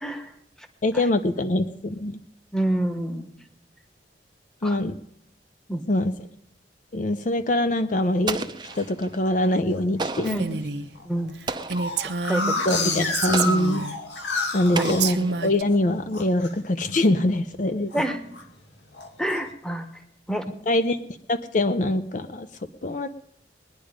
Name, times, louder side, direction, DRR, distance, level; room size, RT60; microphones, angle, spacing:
voice 1, 0.8-2.2 4.6-5.0 5.9-6.1 6.9-8.5 8.8-10.3 12.6-13.9 14.5-17.9 20.7-21.0 21.3-22.5 22.8-23.1, left 1 dB, 45° left, 11 dB, 0.6 m, -23 dB
voice 2, 2.5-3.3 4.6-4.8 5.7-5.8 10.2-10.5 11.1-11.3 12.3-12.5 14.7-14.8 17.9-18.2 19.2-19.8 20.3-20.4, right 1 dB, 5° left, 7 dB, 1.2 m, -27 dB
sound 1, 8.1-8.8 9.4-9.8 10.2-10.3 10.5-10.6 11.0-15.8 16.1-16.5 16.9-17.2 17.5-18.5 18.9-19.4, left 3 dB, 85° left, 2.1 m, -30 dB
Explosion, 8.3-9.2 10.0-10.5 11.5-12.0 13.3-13.9 14.7-15.6, right 3 dB, 25° right, 0.6 m, -32 dB
Female speech woman speaking, 10.3-10.9 11.3-11.4 11.7-14.0 14.7-15.6, right 4 dB, 75° right, 0.8 m, -28 dB
21.0 x 10.0 x 5.1 m, 0.75 s
head